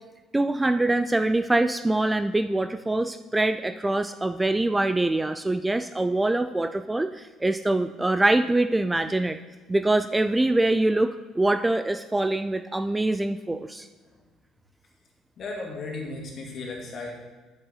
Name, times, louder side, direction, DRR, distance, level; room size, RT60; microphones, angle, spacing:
voice 1, 0.3-9.4 9.7-13.9, right 2 dB, 10° right, 9 dB, 0.3 m, -24 dB
voice 2, 15.4-17.2, left 3 dB, 50° left, -1 dB, 2.2 m, -35 dB
9.4 x 6.7 x 4.0 m, 1.3 s
cardioid pair, 110°, 0 cm